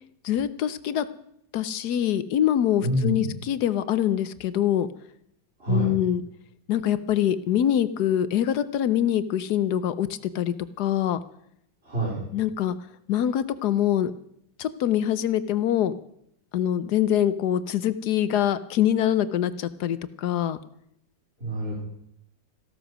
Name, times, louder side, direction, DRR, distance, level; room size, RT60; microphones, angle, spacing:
voice 1, 0.2-1.0 1.5-4.9 5.7-6.2 6.7-10.1 10.3-11.2 12.3-12.7 13.1-14.1 14.6-15.9 16.5-20.6, left 10 dB, 65° left, 14 dB, 1.1 m, -24 dB
voice 2, 2.8-3.3 5.6-5.9 11.8-12.2 21.4-21.8, right 1 dB, 30° right, -3 dB, 4.2 m, -26 dB
15.5 x 13.0 x 6.1 m, 0.74 s
omnidirectional pair, 2.1 m